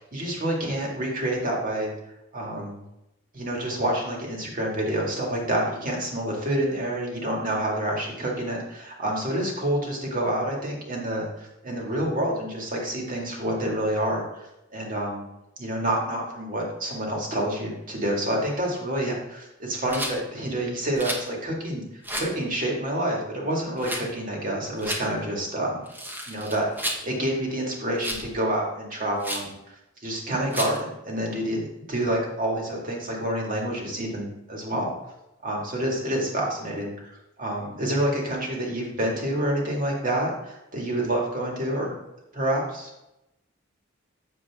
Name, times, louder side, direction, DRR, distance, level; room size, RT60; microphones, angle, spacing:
voice 1, 0.1-1.9 2.3-2.8 3.3-15.2 15.6-21.8 22.1-25.8 26.3-29.5 30.0-34.9 35.4-41.9 42.3-42.9, right 1 dB, 45° right, -1 dB, 2.0 m, -28 dB
Rattle, 19.9-20.2 21.0-21.3 22.0-22.3 23.8-24.0 24.8-25.0 25.9-27.0 28.0-28.3 29.2-29.5 30.5-30.8, equal, 10° right, 1.1 m, -31 dB
7.8 x 7.0 x 3.5 m, 0.91 s
head